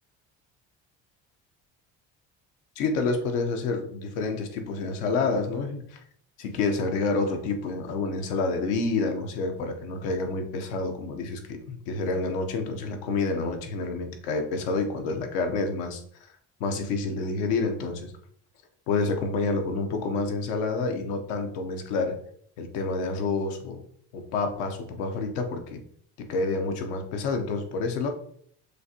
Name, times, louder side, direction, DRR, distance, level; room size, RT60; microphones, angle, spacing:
voice 1, 2.8-6.0 6.4-16.0 16.6-18.1 18.9-22.2 22.6-23.8 24.1-25.8 26.2-28.1, left 3 dB, 85° left, 5 dB, 0.8 m, -28 dB
6.3 x 2.5 x 2.8 m, 0.64 s
supercardioid pair, 80°, 33 cm